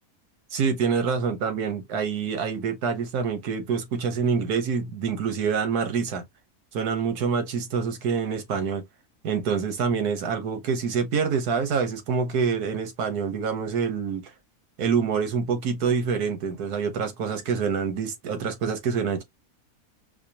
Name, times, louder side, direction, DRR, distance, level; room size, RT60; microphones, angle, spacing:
voice 1, 0.5-6.2 6.7-8.8 9.2-14.3 14.8-19.2, right 6 dB, 80° right, 1.6 m, -26 dB
4.9 x 2.3 x 2.8 m
omnidirectional pair, 1.6 m